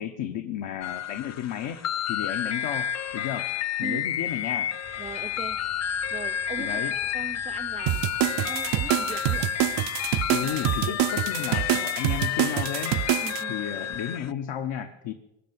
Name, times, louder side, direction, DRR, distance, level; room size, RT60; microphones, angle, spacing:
voice 1, 0.0-1.8 2.1-3.5 3.8-4.7 6.6-6.9 10.3-13.0 13.5-15.1, left 9 dB, 65° left, 1.2 m, -33 dB
sound 1, 0.8-14.3, left 10 dB, 35° left, 0.5 m, -30 dB
sound 2, 4.8-10.9, left 3 dB, 90° left, 5.9 m, -53 dB
voice 2, 5.0-5.7 6.1-9.6 10.4-11.0 13.2-13.6, right 5 dB, 15° right, 0.5 m, -40 dB
sound 3, 7.9-13.4, right 15 dB, 60° right, 0.6 m, -26 dB
20.5 x 7.0 x 9.4 m
cardioid pair, 80°, 48 cm